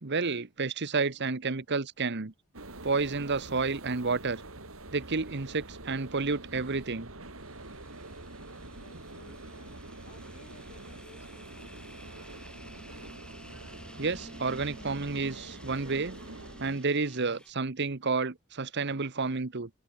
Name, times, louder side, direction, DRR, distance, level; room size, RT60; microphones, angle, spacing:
voice 1, 0.0-2.3 2.8-4.4 4.9-7.1 14.0-16.2 16.6-19.7, right 4 dB, 55° right, 1.2 m, -30 dB
sound 1, 2.5-16.7, right 2 dB, 75° right, 3.9 m, -45 dB
sound 2, 7.4-17.5, left 1 dB, 5° left, 5.9 m, -52 dB
voice 2, 8.7-9.8 10.0-11.9, left 2 dB, 35° left, 7.2 m, -57 dB
open air
head